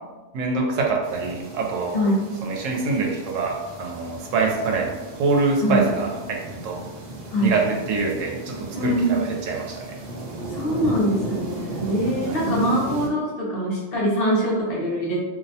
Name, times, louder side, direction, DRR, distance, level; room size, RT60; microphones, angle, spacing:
voice 1, 0.3-2.0 2.4-6.8 7.4-10.0 12.3-12.4, right 4 dB, 90° right, 0 dB, 0.9 m, -25 dB
sound 1, 1.0-13.1, right 2 dB, 65° right, 0.4 m, -35 dB
voice 2, 1.9-2.3 5.6-5.9 7.3-7.5 8.7-9.3 10.5-15.2, equal, 55° left, -5 dB, 0.8 m, -23 dB
2.5 x 2.1 x 2.6 m, 1.2 s
omnidirectional pair, 1.3 m